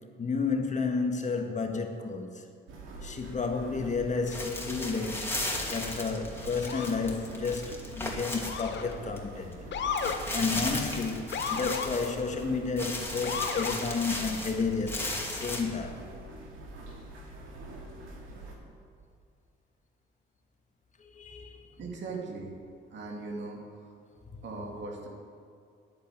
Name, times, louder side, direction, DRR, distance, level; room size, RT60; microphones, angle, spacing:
voice 1, 0.2-2.4 3.0-9.6 10.1-16.1 21.0-21.8, left 4 dB, 35° left, 1.6 m, -32 dB
sound 1, 2.7-18.6, right 1 dB, 85° right, 2.4 m, -45 dB
sound 2, 4.3-9.2 9.5-9.6 9.9-12.5 12.8-15.6, left 1 dB, 10° left, 2.5 m, -36 dB
Motor vehicle (road) / Siren, 6.6-7.0 8.4-9.0 9.7-10.2 11.3-11.9 13.2-13.8, left 6 dB, 65° left, 1.2 m, -33 dB
voice 2, 21.8-22.6 22.9-23.9 24.4-25.1, right 3 dB, 65° right, 2.6 m, -39 dB
10.0 x 8.8 x 8.6 m
cardioid pair, 90°, 20 cm